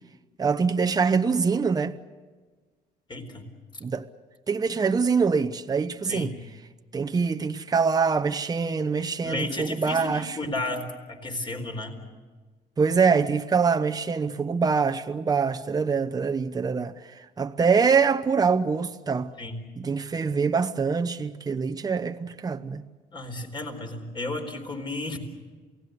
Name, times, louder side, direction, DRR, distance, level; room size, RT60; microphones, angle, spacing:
voice 1, 0.4-1.9 3.8-4.0 4.5-6.3 6.9-10.4 12.8-19.3 19.8-22.8, right 5 dB, 20° right, 0.9 m, -24 dB
voice 2, 3.1-3.4 6.0-6.4 9.2-12.0 19.4-19.7 23.1-25.2, left 2 dB, 30° left, 4.2 m, -33 dB
28.5 x 18.0 x 8.0 m
cardioid pair, 110°, 17 cm